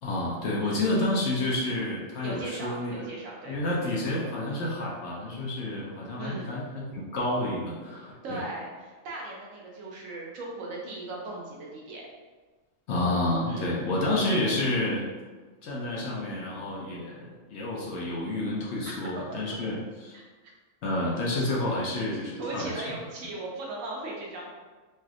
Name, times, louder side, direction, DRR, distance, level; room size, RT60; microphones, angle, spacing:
voice 1, 0.0-3.1 3.5-8.4 12.9-15.1 15.6-20.1 20.8-22.8, left 1 dB, 65° left, -4 dB, 0.8 m, -29 dB
voice 2, 0.6-1.2 2.2-3.6 6.2-6.6 8.2-12.0 13.5-13.9 18.9-19.1 19.5-19.6 20.1-20.2 22.4-24.5, right 2 dB, 75° right, -2 dB, 1.0 m, -38 dB
3.2 x 2.6 x 2.4 m, 1.3 s
omnidirectional pair, 1.4 m